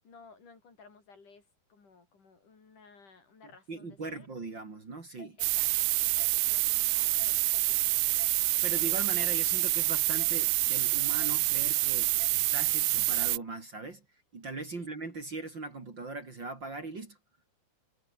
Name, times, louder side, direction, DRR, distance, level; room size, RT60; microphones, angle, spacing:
voice 1, 0.0-4.3 5.4-8.2 14.8-14.9, left 4 dB, 60° left, 6.8 m, -57 dB
voice 2, 3.7-5.4 8.6-14.0 14.3-17.2, right 3 dB, 35° right, 3.5 m, -40 dB
sound 1, 5.2-5.3 6.2-6.3 7.2-7.4 8.2-8.3 9.2-9.4 10.2-10.3 11.2-11.4 12.2-12.3 13.2-13.4, left 3 dB, 35° left, 5.7 m, -49 dB
sound 2, 5.4-13.4, right 18 dB, 80° right, 1.7 m, -27 dB
omnidirectional pair, 4.0 m